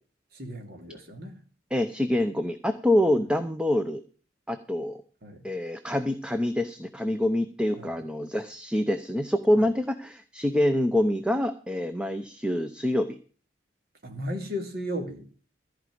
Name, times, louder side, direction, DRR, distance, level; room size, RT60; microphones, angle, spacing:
voice 1, 0.3-1.4 5.2-5.5 7.8-8.0 9.5-9.8 14.0-15.2, equal, 55° right, 3 dB, 2.7 m, -35 dB
voice 2, 1.7-4.0 4.5-5.0 5.4-13.2, left 1 dB, 5° right, 8 dB, 0.7 m, -26 dB
14.5 x 5.2 x 9.3 m, 0.40 s
head